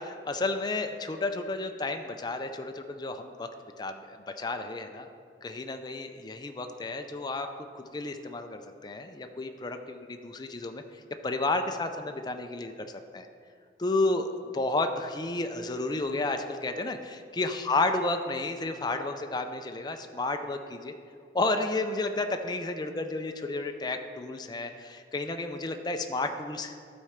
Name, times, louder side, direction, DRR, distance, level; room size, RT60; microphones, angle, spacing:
voice 1, 0.0-3.5 3.8-5.1 5.4-7.5 7.7-10.8 11.2-13.3 13.8-17.0 17.3-20.9 21.3-26.7, left 2 dB, 25° left, 6 dB, 0.4 m, -31 dB
12.0 x 4.3 x 5.0 m, 2.2 s
head